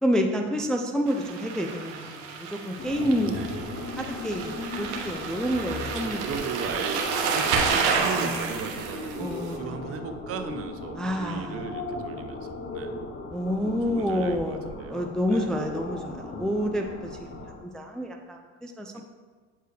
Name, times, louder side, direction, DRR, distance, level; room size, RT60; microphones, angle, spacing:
voice 1, 0.0-3.5 4.0-6.3 8.2-8.6 9.2-10.0 11.0-11.6 13.3-19.0, equal, ahead, 2 dB, 0.4 m, -29 dB
sound 1, 1.1-9.6, right 5 dB, 80° right, 1.0 m, -30 dB
sound 2, 2.8-17.6, left 3 dB, 30° left, 1.1 m, -38 dB
voice 2, 5.7-9.3 9.6-12.9 13.9-15.6 17.3-17.6 18.9-19.0, right 6 dB, 45° right, 7 dB, 0.7 m, -37 dB
8.0 x 4.5 x 3.3 m, 1.4 s
supercardioid pair, 95°, 34 cm